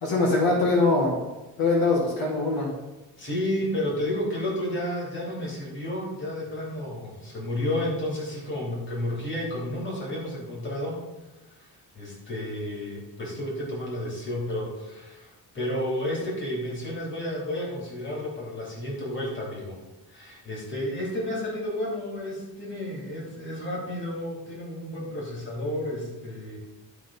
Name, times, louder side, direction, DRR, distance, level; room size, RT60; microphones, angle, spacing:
voice 1, 0.0-1.1 1.6-2.7, left 3 dB, 70° left, -3 dB, 2.2 m, -22 dB
voice 2, 3.2-11.0 11.6-19.8 20.1-26.6, left 1 dB, 30° left, -4 dB, 3.0 m, -31 dB
12.0 x 4.0 x 5.6 m, 1.0 s
cardioid pair, 170°, 38 cm